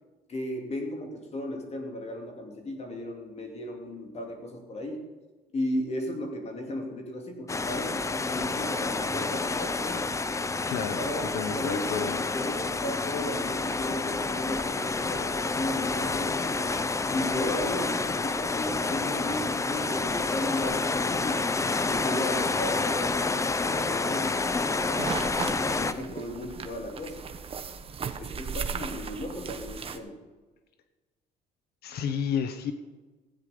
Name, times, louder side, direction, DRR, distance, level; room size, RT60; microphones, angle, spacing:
voice 1, 0.3-5.1 5.5-10.1 10.9-12.1 12.3-16.6 17.1-21.5 21.9-25.2 25.6-27.2 28.1-30.2, left 1 dB, 40° left, 3 dB, 2.7 m, -35 dB
sound 1, 7.5-25.9, left 3 dB, 15° left, 0.7 m, -29 dB
voice 2, 10.7-11.0 11.3-12.2 31.8-32.7, left 7 dB, 70° left, 9 dB, 1.1 m, -30 dB
sound 2, 24.9-30.0, right 6 dB, 35° right, 1.0 m, -36 dB
15.5 x 9.6 x 5.1 m, 1.3 s
cardioid pair, 110°, 17 cm